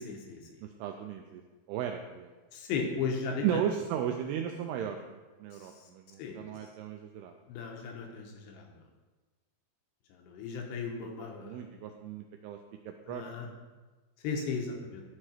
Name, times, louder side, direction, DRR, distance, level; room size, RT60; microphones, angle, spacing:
voice 1, 0.0-0.6 2.5-3.6 6.2-6.4 7.5-8.7 10.1-11.6 13.1-13.5 14.2-15.0, left 5 dB, 80° left, 1 dB, 3.1 m, -36 dB
voice 2, 0.6-1.4 1.7-2.3 3.4-7.4 11.0-11.1 11.4-12.6 12.9-13.5, right 9 dB, 85° right, 4 dB, 2.3 m, -36 dB
12.0 x 4.7 x 4.4 m, 1.3 s
omnidirectional pair, 5.2 m